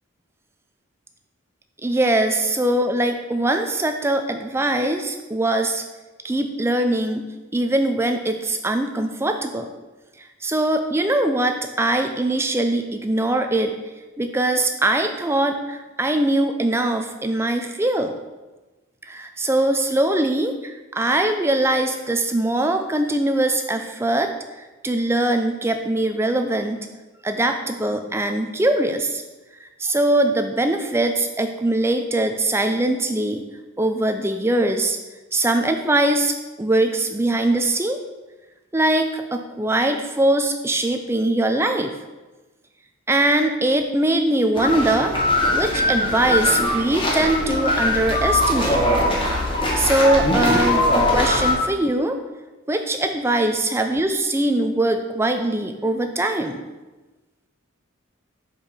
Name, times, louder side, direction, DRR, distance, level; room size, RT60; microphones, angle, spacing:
voice 1, 1.8-5.8 6.2-7.2 7.5-9.7 10.4-13.7 14.2-18.1 19.1-24.3 24.8-26.9 27.2-29.2 29.6-33.4 33.8-35.0 35.3-36.3 36.6-38.0 38.7-41.9 43.1-45.1 45.5-48.8 49.5-52.2 52.7-56.6, right 1 dB, 10° right, 6 dB, 0.4 m, -21 dB
sound 1, 44.6-51.5, left 1 dB, 25° left, 1.0 m, -21 dB
5.3 x 4.5 x 4.9 m, 1.2 s
head